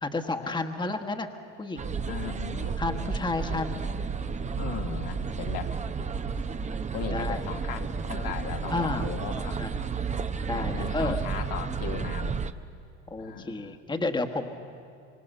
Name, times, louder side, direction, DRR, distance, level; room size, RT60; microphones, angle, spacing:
voice 1, 0.0-1.3 1.6-1.9 2.8-3.8 7.1-7.4 8.7-9.1 9.4-9.7 10.5-11.2 13.1-14.5, left 3 dB, 10° left, 6 dB, 1.4 m, -31 dB
sound 1, 1.8-12.5, right 5 dB, 20° right, 0.8 m, -32 dB
voice 2, 2.1-2.8 3.5-3.9 4.5-5.7 6.9-9.6 10.5-12.4 13.2-13.8, left 8 dB, 55° left, 4 dB, 1.5 m, -37 dB
25.0 x 25.0 x 6.7 m, 2.5 s
hypercardioid pair, 95°, 38 cm